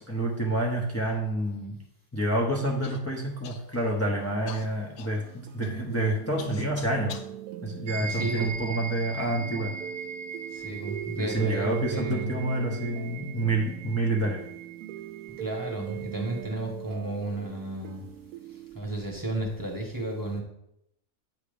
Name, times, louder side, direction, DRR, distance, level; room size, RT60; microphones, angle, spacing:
voice 1, 0.0-1.8 2.1-7.2 7.6-9.7 11.2-14.4, right 1 dB, 20° left, -2 dB, 0.4 m, -28 dB
Human voice / Cough, 2.8-3.0 3.4-3.9 4.5-7.3 8.0-8.9 9.6-9.7 10.4-10.8, left 7 dB, 60° left, 0.8 m, -46 dB
sound 1, 4.2-18.8, right 11 dB, 85° right, 1.1 m, -41 dB
sound 2, 7.9-16.6, right 4 dB, 60° right, 0.6 m, -41 dB
voice 2, 8.1-8.5 10.5-12.4 15.4-18.0 18.7-20.4, right 2 dB, 15° right, 0 dB, 1.0 m, -33 dB
8.5 x 2.9 x 5.1 m, 0.79 s
omnidirectional pair, 1.6 m